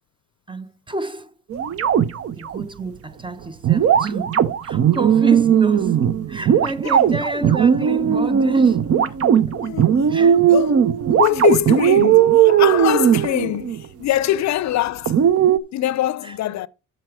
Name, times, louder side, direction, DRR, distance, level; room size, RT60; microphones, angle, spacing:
voice 1, 0.5-1.3 2.3-8.9 10.1-10.4 16.2-16.3, right 3 dB, 15° right, 0.8 m, -28 dB
sound 1, 1.5-2.7 3.6-13.9 15.1-15.6, right 8 dB, 50° right, 0.8 m, -17 dB
voice 2, 9.5-10.1 10.5-10.8 11.2-15.2 15.7-16.7, left 13 dB, 65° left, 0.5 m, -23 dB
7.4 x 6.9 x 4.8 m
cardioid pair, 90°, 30 cm